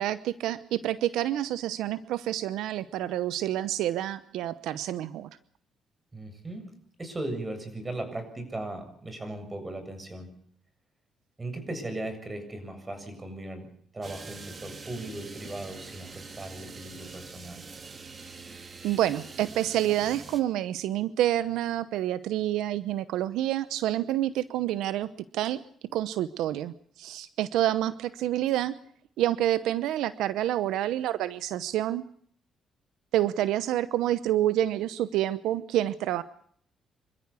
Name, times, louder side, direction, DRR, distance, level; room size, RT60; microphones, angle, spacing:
voice 1, 0.0-5.3 18.8-25.6 25.9-28.7 29.2-32.0 33.1-36.2, right 13 dB, 90° right, 15 dB, 0.8 m, -28 dB
voice 2, 6.1-6.7 7.0-10.3 11.4-17.6, right 2 dB, 20° right, 8 dB, 7.5 m, -38 dB
sound 1, 14.0-20.4, right 4 dB, 40° right, 3.0 m, -44 dB
26.5 x 14.5 x 8.4 m, 0.62 s
cardioid pair, 90°, 0 cm